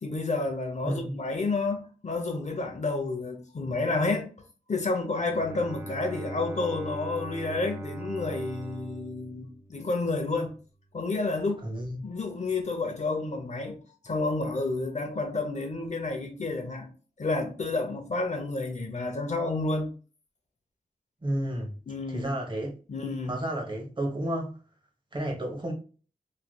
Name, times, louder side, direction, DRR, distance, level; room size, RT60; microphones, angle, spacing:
voice 1, 0.0-4.3 4.7-10.5 10.9-11.7 12.0-13.8 14.0-16.9 17.2-19.9 21.9-22.3 22.9-23.4, left 3 dB, 50° left, 0.7 m, -30 dB
voice 2, 0.8-1.2 11.6-12.1 21.2-21.8 22.1-22.7 23.3-24.6 25.1-25.7, right 1 dB, 30° right, 0.9 m, -31 dB
Bowed string instrument, 5.2-10.2, right 1 dB, 15° right, 0.5 m, -40 dB
3.1 x 2.8 x 2.3 m
wide cardioid pair, 115°, 15 cm